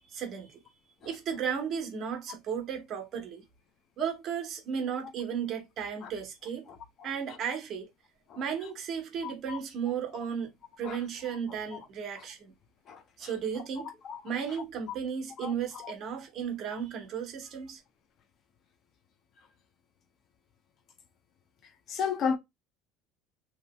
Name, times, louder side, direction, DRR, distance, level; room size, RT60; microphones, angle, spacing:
voice 1, 0.1-0.6 1.0-3.4 4.0-6.7 7.0-7.9 8.4-12.5 13.2-13.9 14.2-17.8, right 7 dB, 45° right, 1.1 m, -34 dB
voice 2, 6.7-7.4 8.3-8.4 9.2-9.6 10.8-11.0 11.7-11.8 12.9-13.3 13.8-14.2 15.4-15.9 21.9-22.4, left 6 dB, 45° left, 0.6 m, -35 dB
2.8 x 2.7 x 2.2 m
supercardioid pair, 110°, 0 cm